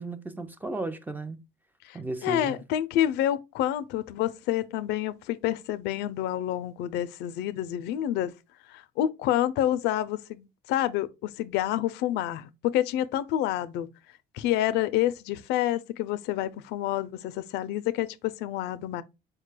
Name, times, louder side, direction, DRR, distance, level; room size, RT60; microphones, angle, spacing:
voice 1, 0.0-1.4 1.9-2.6, right 2 dB, 10° right, 0.4 m, -34 dB
voice 2, 1.8-8.3 8.7-13.9 14.3-19.0, left 12 dB, 90° left, 0.4 m, -28 dB
4.5 x 2.2 x 3.2 m
cardioid pair, 110°, 17 cm